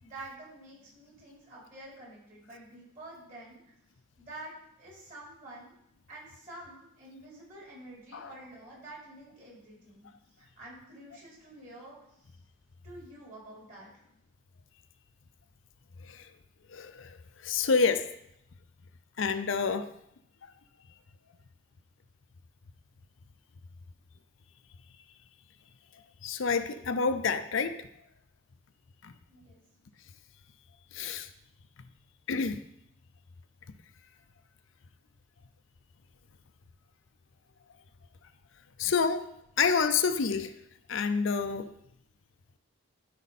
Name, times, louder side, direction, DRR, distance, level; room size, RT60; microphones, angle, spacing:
voice 1, 0.0-3.8 4.2-5.7 6.1-10.1 10.4-12.3 12.8-13.9 29.3-29.6, right 2 dB, 40° right, -5 dB, 4.1 m, -48 dB
voice 2, 16.7-17.2 17.4-18.0 19.2-19.9 26.2-27.7 29.0-29.1 30.9-31.3 32.3-32.6 38.8-39.2 39.6-40.5 40.9-41.7, left 5 dB, 70° left, 9 dB, 0.5 m, -28 dB
12.5 x 5.2 x 4.2 m, 0.77 s
head